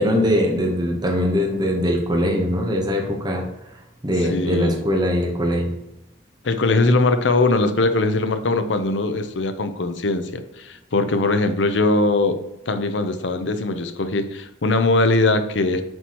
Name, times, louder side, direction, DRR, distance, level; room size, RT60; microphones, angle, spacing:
voice 1, 0.0-3.4 4.0-5.7, equal, 25° right, 0 dB, 1.1 m, -21 dB
voice 2, 4.3-4.8 6.4-12.4 12.7-15.8, left 2 dB, 80° left, 9 dB, 0.7 m, -21 dB
7.6 x 4.6 x 3.0 m, 0.92 s
head